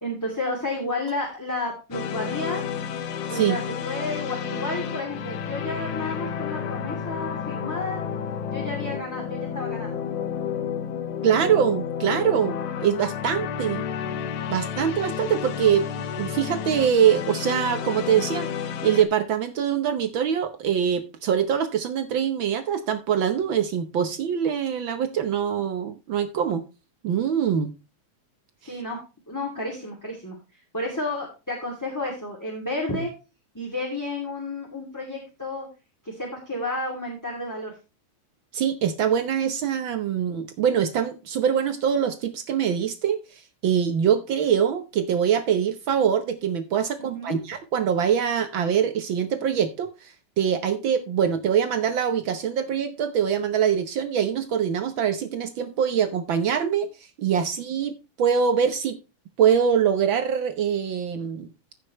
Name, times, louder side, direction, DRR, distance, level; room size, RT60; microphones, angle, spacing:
voice 1, 0.0-2.6 3.3-8.0 8.5-10.0 28.7-29.0 29.3-30.4 30.7-33.1 33.5-35.7 36.0-37.7 47.0-47.4, left 2 dB, 5° left, 2.2 m, -31 dB
sound 1, 1.9-19.0, left 8 dB, 85° left, 2.5 m, -31 dB
voice 2, 11.2-13.8 14.5-15.9 16.2-18.5 18.8-26.6 27.0-27.7 28.6-28.8 38.5-56.9 57.2-59.0 59.4-61.5, right 8 dB, 75° right, 1.1 m, -24 dB
15.0 x 6.6 x 3.0 m
omnidirectional pair, 3.4 m